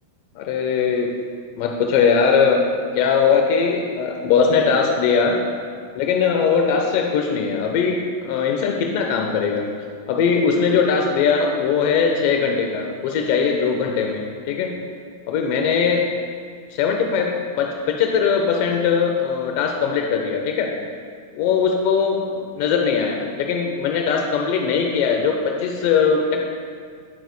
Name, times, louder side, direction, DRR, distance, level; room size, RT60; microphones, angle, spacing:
voice 1, 0.3-1.1 1.6-2.6 2.9-5.4 5.9-9.7 10.1-14.7 15.3-16.0 16.7-20.7 21.3-26.4, left 6 dB, 55° left, 2 dB, 0.8 m, -20 dB
17.5 x 6.3 x 2.2 m, 2.1 s
supercardioid pair, 140°, 0 cm